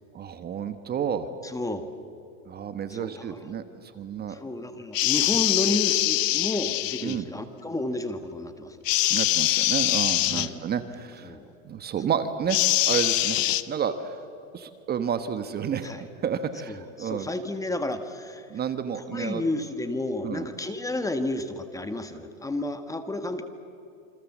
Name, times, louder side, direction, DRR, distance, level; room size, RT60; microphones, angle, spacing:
voice 1, 0.1-1.3 2.5-4.4 7.0-7.2 9.1-11.4 11.6-13.4 13.7-14.2 14.5-15.9 16.2-17.3 18.5-19.4 20.2-20.5, right 8 dB, 25° right, 10 dB, 1.2 m, -30 dB
voice 2, 1.4-1.9 2.9-3.5 4.3-8.8 10.2-10.7 11.2-11.5 15.8-16.0 16.7-18.5 19.1-23.4, left 2 dB, 10° left, 8 dB, 1.4 m, -31 dB
sound 1, 4.9-7.2 8.9-10.5 12.5-13.6, left 16 dB, 70° left, 1.1 m, -23 dB
28.0 x 26.0 x 7.4 m, 2.7 s
supercardioid pair, 130°, 39 cm